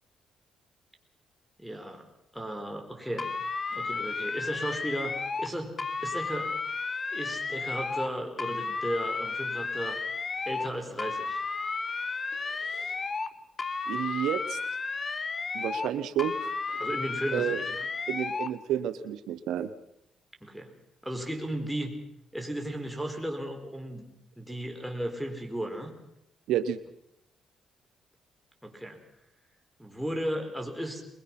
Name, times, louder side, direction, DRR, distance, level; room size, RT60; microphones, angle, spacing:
voice 1, 1.6-2.1 2.3-3.3 3.7-5.8 6.0-6.5 7.1-10.0 10.5-11.4 16.8-17.6 20.4-20.7 21.0-21.9 22.3-24.0 24.4-25.9 28.6-29.0 29.8-31.0, right 1 dB, ahead, 2 dB, 4.2 m, -35 dB
sound 1, 3.2-5.5 5.8-8.1 8.4-10.7 11.0-13.3 13.6-15.9 16.2-18.5, left 4 dB, 35° left, 1.3 m, -33 dB
voice 2, 12.6-12.9 13.9-14.6 15.5-16.8 17.3-17.6 18.1-19.7 26.5-26.8, right 10 dB, 85° right, 11 dB, 1.0 m, -31 dB
21.5 x 21.5 x 6.0 m, 0.83 s
cardioid pair, 90°, 0 cm